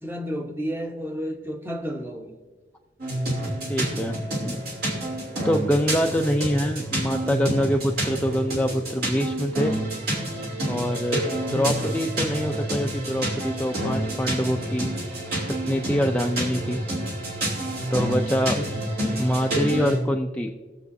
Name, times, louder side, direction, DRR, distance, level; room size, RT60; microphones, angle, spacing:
voice 1, 0.0-2.4 11.5-11.7 18.5-18.7 19.0-19.9, equal, 15° right, 1.0 m, -32 dB
sound 1, 3.0-20.0, right 1 dB, 55° right, 2.9 m, -28 dB
voice 2, 3.7-4.6 5.4-9.7 10.7-14.9 15.7-16.8 17.9-18.6 19.2-20.5, equal, 5° left, 0.5 m, -25 dB
21.5 x 7.3 x 2.7 m
head